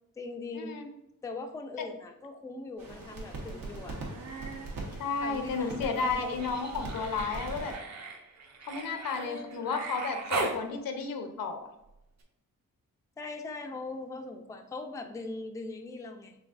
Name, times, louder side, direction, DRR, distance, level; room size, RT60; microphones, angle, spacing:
voice 1, 0.2-0.8 1.2-4.0 5.2-6.5 9.1-9.6 13.2-16.4, left 3 dB, 10° left, 4 dB, 0.3 m, -41 dB
sound 1, 2.8-7.8, right 2 dB, 80° right, 1.3 m, -41 dB
Human voice, 3.9-4.7 5.0-10.6 12.2-12.3, right 3 dB, 55° right, 0.9 m, -39 dB
voice 2, 5.0-7.7 8.6-11.7, left 4 dB, 90° left, 6 dB, 0.8 m, -33 dB
5.9 x 3.4 x 2.5 m, 0.87 s
wide cardioid pair, 140°, 33 cm